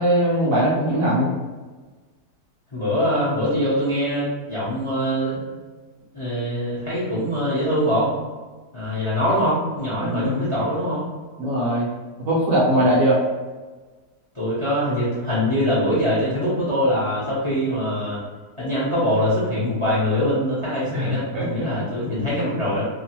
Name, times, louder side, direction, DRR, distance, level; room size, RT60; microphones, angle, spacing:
voice 1, 0.0-1.4 10.0-10.5 11.4-11.9 12.3-13.2 20.9-21.7 22.3-22.6, right 1 dB, 65° right, -6 dB, 0.9 m, -21 dB
voice 2, 2.7-5.4 6.1-8.1 8.7-11.1 14.3-18.2 18.6-22.8, equal, 30° left, -9 dB, 0.6 m, -23 dB
2.9 x 2.0 x 2.8 m, 1.3 s
omnidirectional pair, 1.8 m